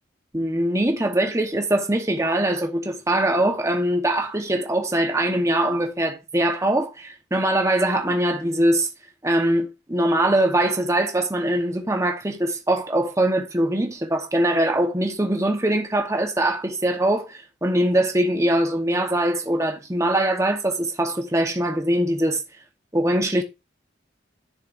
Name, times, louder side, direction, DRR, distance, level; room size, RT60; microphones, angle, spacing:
voice 1, 0.3-8.9 9.2-22.4 22.9-23.4, right 1 dB, 15° right, 1.1 m, -22 dB
12.0 x 6.6 x 2.6 m
head